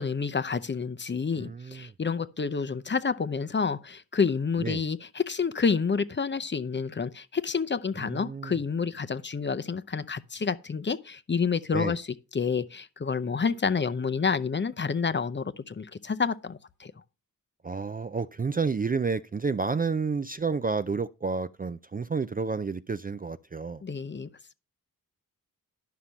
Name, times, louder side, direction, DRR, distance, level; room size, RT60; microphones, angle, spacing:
voice 1, 0.0-16.9 23.8-24.3, left 5 dB, 30° left, 0.6 m, -29 dB
voice 2, 1.3-1.9 4.6-4.8 8.0-8.6 11.7-12.0 17.6-23.8, right 4 dB, 25° right, 0.4 m, -30 dB
11.5 x 5.9 x 5.1 m
wide cardioid pair, 125°, 35 cm